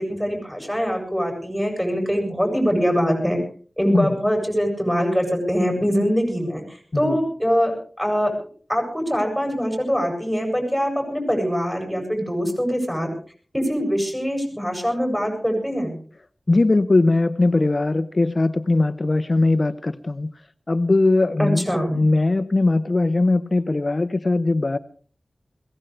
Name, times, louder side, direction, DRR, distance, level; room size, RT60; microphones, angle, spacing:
voice 1, 0.0-3.4 3.8-8.3 8.7-13.1 13.5-16.0 21.4-22.0, equal, 5° right, 2 dB, 7.3 m, -23 dB
voice 2, 16.5-20.3 20.7-24.8, left 2 dB, 40° left, 12 dB, 0.7 m, -20 dB
21.5 x 17.0 x 3.4 m, 0.43 s
wide cardioid pair, 85°, 0 cm